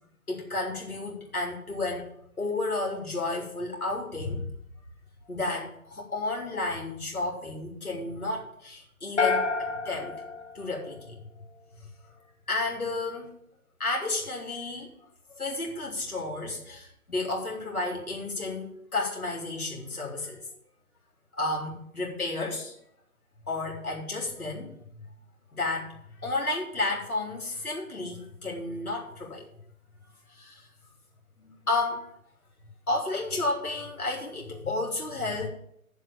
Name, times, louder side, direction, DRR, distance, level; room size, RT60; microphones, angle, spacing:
voice 1, 0.3-2.1 2.4-4.5 5.3-10.1 10.5-11.2 11.7-11.9 12.5-13.3 13.8-14.9 15.3-20.4 21.4-22.8 23.5-25.0 25.5-29.5 30.3-30.7 31.4-32.1 32.9-35.5, left 2 dB, 80° left, -1 dB, 3.1 m, -32 dB
sound 1, 9.2-11.4, left 4 dB, 55° left, 1.2 m, -29 dB
8.0 x 7.2 x 8.3 m, 0.71 s
figure-of-eight pair, 155°, 43 cm